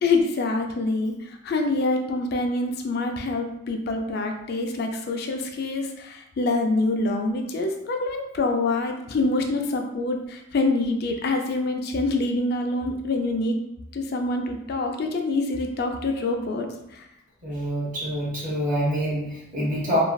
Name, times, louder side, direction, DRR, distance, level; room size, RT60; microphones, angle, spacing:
voice 1, 0.0-13.6 13.9-16.7 16.9-17.0, left 2 dB, 55° left, 4 dB, 0.4 m, -26 dB
voice 2, 17.4-20.0, equal, 40° right, -6 dB, 1.1 m, -26 dB
3.1 x 2.5 x 2.2 m, 0.82 s
head